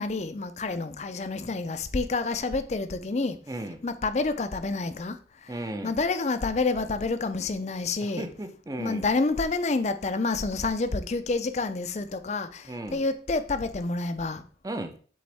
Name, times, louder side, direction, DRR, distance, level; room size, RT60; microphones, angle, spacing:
voice 1, 0.0-3.4 3.8-8.3 8.8-14.5, left 3 dB, 40° left, 0.5 m, -28 dB
voice 2, 3.5-3.8 5.5-5.9 8.0-9.0 12.7-13.0 14.6-15.0, right 1 dB, 20° right, 0.6 m, -35 dB
7.7 x 4.1 x 3.4 m
head